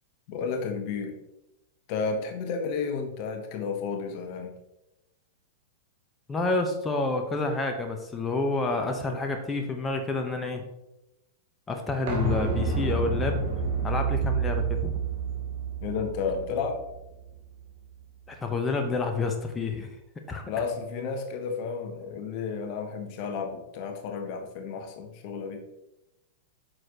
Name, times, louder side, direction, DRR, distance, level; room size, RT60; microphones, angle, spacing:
voice 1, 0.3-1.2 1.9-4.6 15.8-16.8 20.4-25.6, left 5 dB, 45° left, 5 dB, 1.2 m, -32 dB
voice 2, 6.3-10.7 11.7-13.4 13.8-14.9 18.3-20.0 20.3-20.4, left 3 dB, 15° left, 3 dB, 1.1 m, -29 dB
sound 1, 12.1-17.7 18.0-18.1, right 4 dB, 55° right, 2.5 m, -29 dB
9.2 x 6.5 x 3.1 m, 0.90 s
figure-of-eight pair, 100°, 0 cm